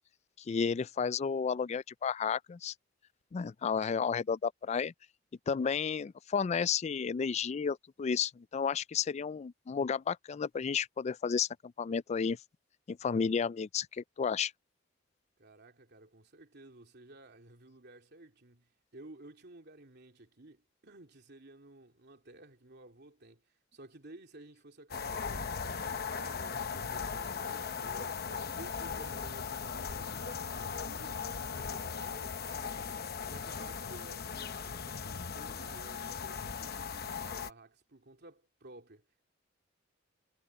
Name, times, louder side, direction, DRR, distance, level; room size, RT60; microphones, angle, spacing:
voice 1, 0.4-2.7 3.3-4.9 5.5-12.4 12.9-14.5, left 6 dB, 35° left, 0.3 m, -32 dB
voice 2, 15.4-39.2, right 2 dB, 60° right, 3.1 m, -54 dB
sound 1, 24.9-37.5, left 6 dB, 55° left, 0.9 m, -38 dB
head